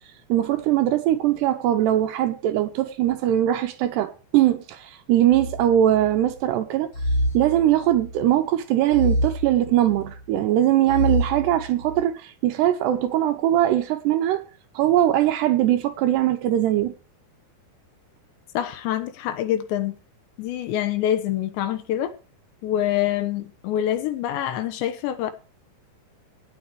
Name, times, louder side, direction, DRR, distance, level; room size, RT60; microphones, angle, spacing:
voice 1, 0.3-6.9 7.3-14.4 14.7-16.9, right 12 dB, 75° right, 2.6 m, -21 dB
sound 1, 5.3-6.3 6.9-8.2 8.9-10.2 10.9-12.0, equal, 25° left, 3.6 m, -27 dB
voice 2, 18.5-20.0 20.4-22.1 22.6-25.3, left 11 dB, 75° left, 3.2 m, -25 dB
18.0 x 6.1 x 4.7 m
omnidirectional pair, 5.5 m